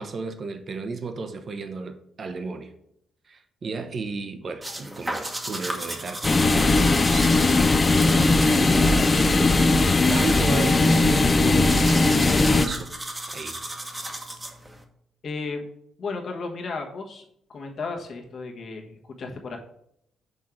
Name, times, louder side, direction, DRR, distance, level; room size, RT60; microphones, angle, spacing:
voice 1, 0.0-2.7 3.3-9.7 10.1-11.9 12.3-12.9 13.3-13.6, right 4 dB, 45° right, 0.9 m, -33 dB
sound 1, 4.6-14.8, right 1 dB, 15° right, 1.0 m, -36 dB
sound 2, 6.2-12.7, left 3 dB, 25° left, 0.5 m, -19 dB
voice 2, 15.2-15.6 16.0-17.2 17.5-19.6, left 4 dB, 55° left, 1.4 m, -34 dB
6.4 x 3.7 x 6.0 m
cardioid pair, 90°, 0 cm